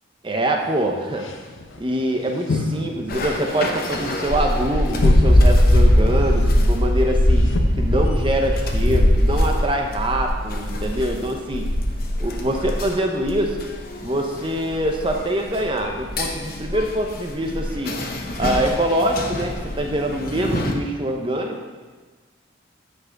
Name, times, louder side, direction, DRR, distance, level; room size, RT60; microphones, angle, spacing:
voice 1, 0.2-1.3 1.8-7.5 7.8-11.7 12.2-13.7 14.0-17.9 18.4-19.5 19.8-21.6, right 1 dB, 25° right, 2 dB, 0.9 m, -24 dB
sound 1, 0.6-0.9 1.1-7.6, left 3 dB, 75° left, 0.8 m, -31 dB
sound 2, 3.1-20.7, left 1 dB, 45° left, 0.9 m, -21 dB
9.1 x 5.2 x 6.0 m, 1.4 s
head